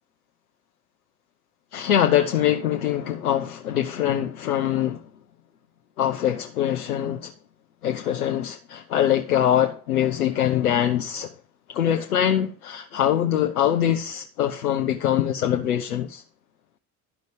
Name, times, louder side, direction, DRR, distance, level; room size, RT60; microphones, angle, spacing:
voice 1, 1.7-5.0 6.0-7.3 7.8-11.3 11.7-16.2, left 10 dB, 80° left, 0.7 m, -23 dB
12.5 x 5.2 x 6.6 m
figure-of-eight pair, 50°, 43 cm